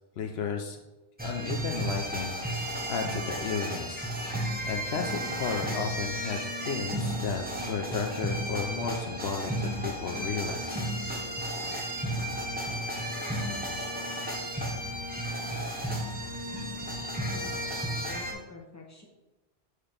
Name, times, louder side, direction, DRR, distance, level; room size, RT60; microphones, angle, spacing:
voice 1, 0.2-0.8 1.2-4.0 4.7-6.4 6.7-10.9, left 6 dB, 70° left, 3 dB, 0.9 m, -33 dB
sound 1, 1.2-18.3, right 1 dB, 10° right, 0.7 m, -33 dB
voice 2, 17.3-19.1, left 2 dB, 15° left, -1 dB, 1.0 m, -47 dB
6.5 x 2.9 x 5.1 m, 1.1 s
omnidirectional pair, 1.1 m